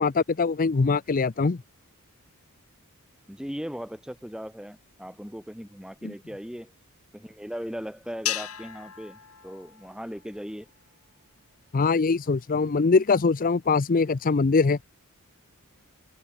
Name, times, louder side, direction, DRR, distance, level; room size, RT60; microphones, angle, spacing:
voice 1, 0.0-1.6 6.0-6.1 11.7-14.8, left 4 dB, 40° left, 0.5 m, -22 dB
voice 2, 3.3-6.7 7.1-10.7, equal, 5° right, 3.9 m, -38 dB
sound 1, 8.3-10.7, left 12 dB, 75° left, 3.7 m, -36 dB
head